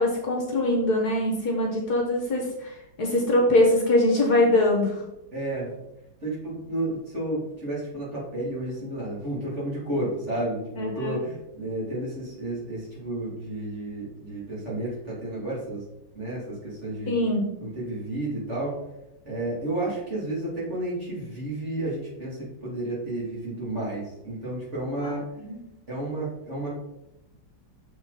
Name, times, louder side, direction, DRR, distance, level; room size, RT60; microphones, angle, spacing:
voice 1, 0.0-5.0 10.8-11.2 17.1-17.5 25.0-25.6, left 1 dB, 60° left, 0 dB, 1.6 m, -23 dB
voice 2, 5.3-5.7 6.2-15.8 16.1-17.1 17.6-18.8 19.2-25.3 25.9-26.7, right 1 dB, 35° right, -6 dB, 3.0 m, -31 dB
6.8 x 4.9 x 4.1 m, 0.89 s
omnidirectional pair, 2.1 m